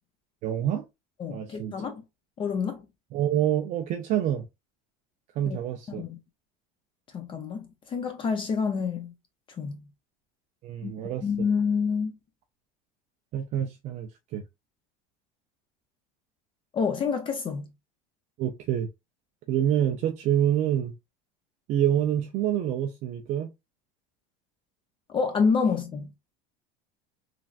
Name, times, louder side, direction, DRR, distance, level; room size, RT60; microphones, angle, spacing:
voice 1, 0.4-0.8 1.3-1.7 3.1-4.5 5.4-6.0 10.6-11.2 13.3-14.4 18.4-18.9 19.5-20.9 21.7-23.5, right 10 dB, 45° right, 0.4 m, -27 dB
voice 2, 1.2-2.0 2.4-2.9 5.5-5.6 5.9-6.2 7.1-9.1 9.6-9.8 10.8-12.1 16.7-17.7 25.1-26.1, left 5 dB, 30° left, 0.5 m, -28 dB
3.2 x 2.4 x 2.4 m
supercardioid pair, 135°, 18 cm